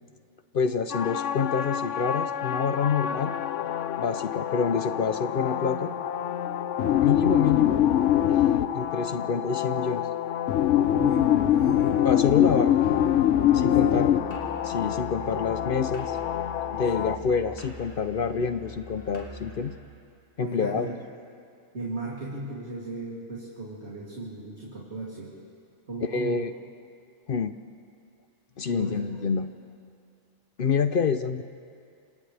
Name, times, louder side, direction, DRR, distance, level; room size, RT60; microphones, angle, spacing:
voice 1, 0.5-3.3 4.0-5.9 7.0-7.9 8.3-10.1 12.0-12.7 13.5-14.2 14.6-16.2 16.7-19.7 20.4-20.9 26.1-26.5 27.3-27.5 28.6-29.5 30.6-31.4, left 5 dB, 55° left, 10 dB, 0.8 m, -27 dB
sound 1, 0.9-17.2, left 11 dB, 80° left, 1.0 m, -25 dB
voice 2, 10.9-11.9 13.5-14.1 16.8-17.2 20.4-21.0 21.7-25.3 25.9-26.3 28.7-29.0, right 2 dB, 60° right, -6 dB, 3.2 m, -36 dB
Musical instrument, 12.8-19.9, left 1 dB, 20° left, 3.8 m, -43 dB
29.0 x 27.0 x 3.4 m, 2.4 s
omnidirectional pair, 1.3 m